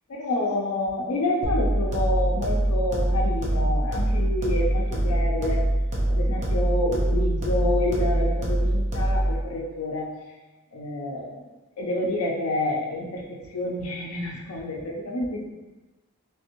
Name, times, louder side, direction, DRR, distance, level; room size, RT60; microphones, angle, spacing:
voice 1, 0.1-5.6 6.1-10.2 10.7-11.3 11.8-15.4, left 1 dB, 85° left, 0 dB, 0.5 m, -28 dB
sound 1, 1.4-9.4, right 1 dB, 30° right, 0.7 m, -24 dB
3.4 x 3.2 x 3.0 m, 1.1 s
head